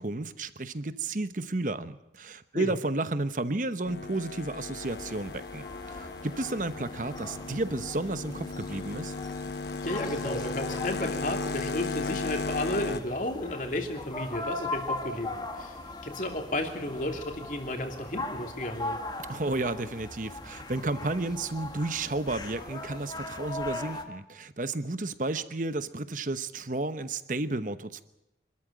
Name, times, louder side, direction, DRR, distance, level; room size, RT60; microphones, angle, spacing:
voice 1, 0.0-9.2 19.3-28.0, right 2 dB, 45° right, 12 dB, 1.0 m, -32 dB
sound 1, 3.9-13.0, left 3 dB, 70° left, 0.9 m, -36 dB
sound 2, 4.8-24.0, left 2 dB, 25° left, 1.7 m, -40 dB
voice 2, 9.8-19.0, left 1 dB, 45° left, 3 dB, 2.9 m, -33 dB
25.5 x 13.5 x 9.0 m, 0.90 s
head